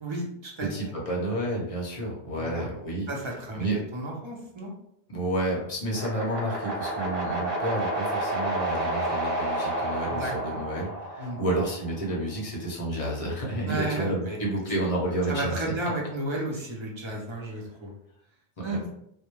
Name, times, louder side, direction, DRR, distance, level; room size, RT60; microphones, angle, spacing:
voice 1, 0.0-0.9 2.3-2.7 3.1-4.7 10.1-10.3 11.2-11.4 13.6-14.4 15.3-17.9 18.6-18.9, right 1 dB, 40° right, -2 dB, 0.5 m, -33 dB
voice 2, 0.6-3.1 3.5-3.8 5.1-15.7 18.6-18.8, right 1 dB, 40° left, -3 dB, 0.7 m, -30 dB
sound 1, 5.9-12.0, right 1 dB, 65° right, 0.9 m, -30 dB
2.1 x 2.1 x 2.9 m, 0.74 s
omnidirectional pair, 1.0 m